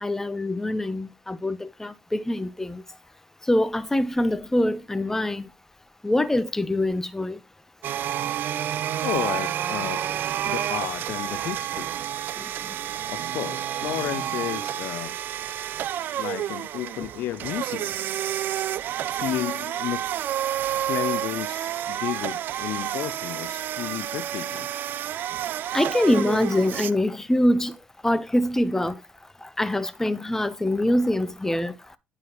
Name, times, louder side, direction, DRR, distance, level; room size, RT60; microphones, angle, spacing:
voice 1, 0.0-2.8 3.5-5.5 6.0-7.4 25.7-27.7 28.0-28.9 29.6-31.7, left 1 dB, 10° left, 0.8 m, -24 dB
sound 1, 7.8-26.9, right 11 dB, 60° right, 0.4 m, -29 dB
voice 2, 9.0-10.1 10.4-12.0 13.1-15.2 16.2-18.0 19.0-20.1 20.9-24.7, left 14 dB, 70° left, 0.4 m, -32 dB
9.4 x 4.8 x 3.0 m
hypercardioid pair, 65°, 4 cm